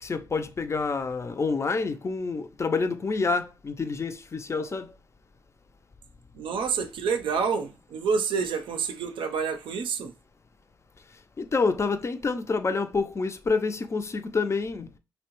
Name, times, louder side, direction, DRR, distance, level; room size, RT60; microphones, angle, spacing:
voice 1, 0.0-4.9 11.4-14.9, left 4 dB, 35° left, 0.4 m, -28 dB
voice 2, 6.3-10.1, right 5 dB, 75° right, 0.5 m, -28 dB
2.7 x 2.1 x 2.9 m
cardioid pair, 70°, 9 cm